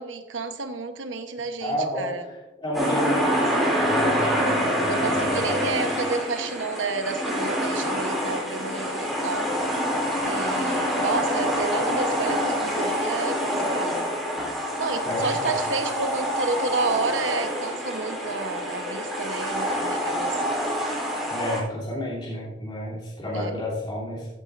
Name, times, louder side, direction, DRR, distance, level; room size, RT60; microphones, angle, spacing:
voice 1, 0.0-2.3 4.9-9.5 10.2-14.1 14.8-20.4 23.3-23.6, right 4 dB, 90° right, 8 dB, 0.9 m, -30 dB
voice 2, 1.6-5.7 15.0-15.5 21.3-24.3, equal, 25° left, -7 dB, 2.9 m, -31 dB
sound 1, 2.7-21.6, equal, ahead, 2.8 m, -26 dB
14.5 x 8.5 x 2.5 m, 1.1 s
head